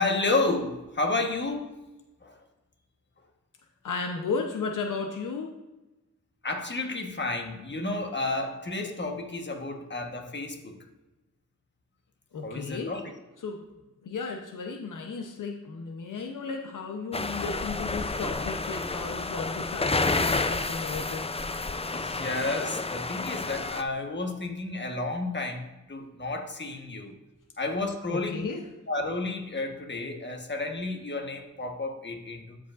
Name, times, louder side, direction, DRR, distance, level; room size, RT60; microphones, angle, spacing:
voice 1, 0.0-1.7 2.2-2.4 6.4-10.8 12.4-13.0 21.9-27.1 27.6-28.5 28.9-32.6, left 2 dB, 35° left, 3 dB, 1.3 m, -31 dB
voice 2, 3.8-5.5 12.3-12.9 13.4-13.6 14.0-21.2 28.1-28.6, left 4 dB, 90° left, 3 dB, 0.9 m, -34 dB
sound 1, 17.1-23.8, left 3 dB, 20° left, 0.5 m, -30 dB
13.5 x 5.1 x 2.5 m, 1.1 s
cardioid pair, 60°, 31 cm